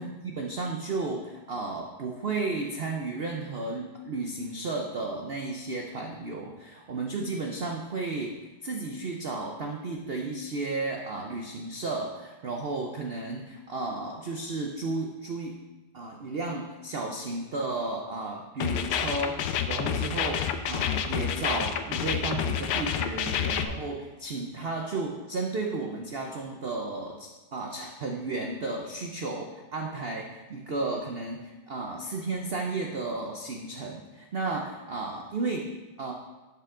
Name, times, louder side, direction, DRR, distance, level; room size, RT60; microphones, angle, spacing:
voice 1, 0.0-15.6 15.9-19.4 19.7-36.1, right 3 dB, 75° right, 1 dB, 0.5 m, -33 dB
sound 1, 18.6-23.6, left 8 dB, 75° left, 1.1 m, -29 dB
11.0 x 5.6 x 3.7 m, 1.2 s
omnidirectional pair, 2.0 m